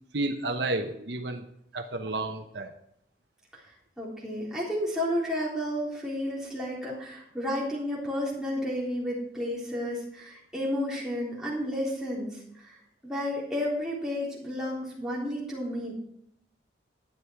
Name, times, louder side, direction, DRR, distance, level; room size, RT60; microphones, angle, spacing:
voice 1, 0.1-1.4 1.7-2.7, right 2 dB, 70° right, 5 dB, 1.0 m, -31 dB
voice 2, 4.0-12.8 13.0-15.9, left 1 dB, 5° right, -6 dB, 3.8 m, -32 dB
12.0 x 9.8 x 4.7 m, 0.74 s
head